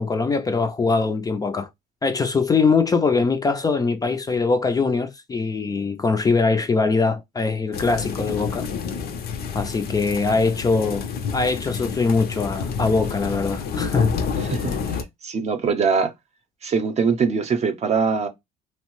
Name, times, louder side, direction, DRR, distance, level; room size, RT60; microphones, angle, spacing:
voice 1, 0.0-1.7 2.0-8.6 9.5-11.1 11.3-14.1, left 4 dB, 20° left, 0.4 m, -22 dB
sound 1, 7.7-15.0, left 6 dB, 65° left, 0.6 m, -29 dB
voice 2, 14.4-16.1 16.6-18.3, right 5 dB, 40° right, 0.6 m, -23 dB
2.8 x 2.0 x 3.0 m
cardioid pair, 110°, 17 cm